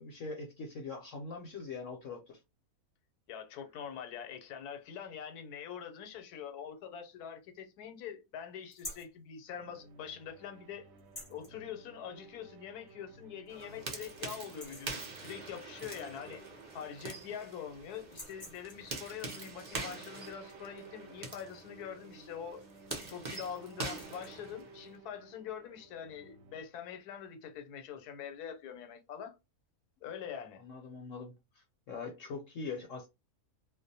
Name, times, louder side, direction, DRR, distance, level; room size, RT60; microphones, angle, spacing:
voice 1, 0.0-2.4 30.6-33.1, left 4 dB, 65° left, 0.9 m, -42 dB
voice 2, 3.3-10.9 11.3-16.4 16.7-22.6 23.1-29.4 30.0-30.6, left 8 dB, 85° left, 1.2 m, -44 dB
sound 1, 8.7-9.2 11.0-11.5 12.9-13.0 13.5-13.6 13.9-14.2 14.4-15.0 16.4-16.5 16.7-17.4 18.0-18.9 21.3-21.6 21.9-22.2 22.6-23.2 23.9-24.3, left 1 dB, 25° left, 0.5 m, -48 dB
sound 2, 9.5-26.6, right 3 dB, 70° right, 1.0 m, -57 dB
sound 3, 13.5-25.0, right 3 dB, 55° right, 0.5 m, -44 dB
2.5 x 2.1 x 2.6 m
omnidirectional pair, 1.6 m